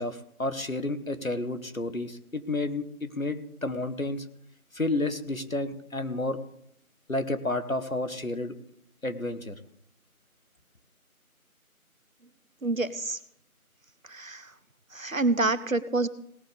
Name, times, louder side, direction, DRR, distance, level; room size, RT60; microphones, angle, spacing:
voice 1, 0.0-4.2 4.7-6.4 7.1-8.5 9.0-9.5, left 2 dB, 65° left, 10 dB, 1.7 m, -31 dB
voice 2, 12.6-13.2 14.1-14.5 14.9-16.1, right 2 dB, 65° right, 15 dB, 1.1 m, -27 dB
18.0 x 7.5 x 6.9 m, 0.72 s
figure-of-eight pair, 175°, 44 cm